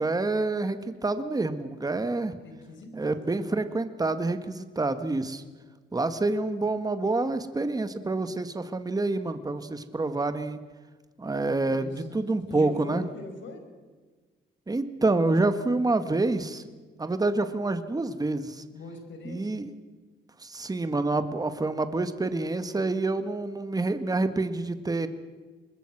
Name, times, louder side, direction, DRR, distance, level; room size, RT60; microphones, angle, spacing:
voice 1, 0.0-2.4 2.9-5.4 5.9-10.6 11.2-13.1 14.7-16.6 17.0-18.6 19.3-19.7 20.4-25.1, right 2 dB, 20° right, 10 dB, 1.7 m, -27 dB
voice 2, 2.4-3.5 11.5-13.6 18.7-19.6, left 3 dB, 70° left, 5 dB, 5.5 m, -43 dB
25.5 x 21.0 x 6.1 m, 1.4 s
cardioid pair, 90°, 20 cm